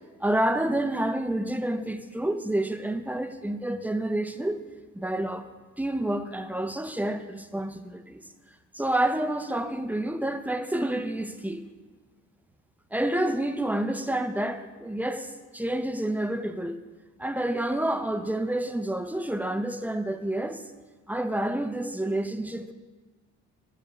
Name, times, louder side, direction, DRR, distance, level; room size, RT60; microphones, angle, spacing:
voice 1, 0.2-4.6 4.9-5.5 5.8-8.2 8.7-11.6 12.9-16.8 17.2-20.6 21.1-22.7, right 1 dB, 5° right, 0.5 m, -29 dB
9.2 x 5.1 x 6.7 m
cardioid pair, 90°, 30 cm